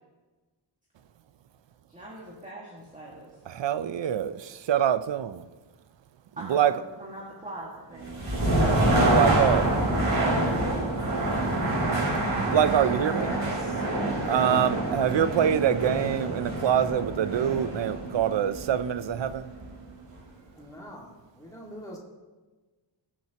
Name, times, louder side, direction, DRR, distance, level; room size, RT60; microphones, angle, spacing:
voice 1, 1.9-3.3 6.4-8.2, right 1 dB, 15° right, 1.8 m, -42 dB
voice 2, 3.5-5.4 6.5-6.7 8.8-9.7 12.5-13.3 14.3-19.5, right 9 dB, 65° right, 0.6 m, -25 dB
sound 1, 8.0-19.8, right 1 dB, 40° right, 4.0 m, -26 dB
voice 3, 12.7-15.2 20.6-22.0, equal, 5° left, 1.9 m, -41 dB
20.5 x 7.4 x 2.9 m
wide cardioid pair, 155°, 47 cm